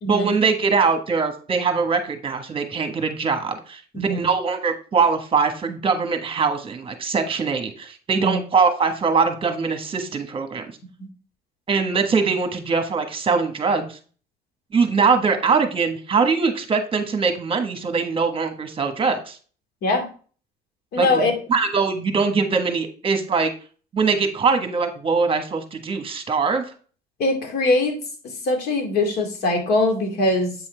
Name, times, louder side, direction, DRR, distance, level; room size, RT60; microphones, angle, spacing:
voice 1, 0.0-10.7 11.7-14.0 14.7-19.4 21.0-23.5 23.9-26.6, right 5 dB, 30° right, 6 dB, 1.4 m, -22 dB
voice 2, 3.9-4.3 8.1-8.4 11.0-11.1 19.8-20.1 20.9-21.3 27.2-28.0 28.4-30.5, left 2 dB, 70° left, 3 dB, 2.3 m, -22 dB
8.5 x 5.6 x 3.3 m, 0.40 s
cardioid pair, 110°, 17 cm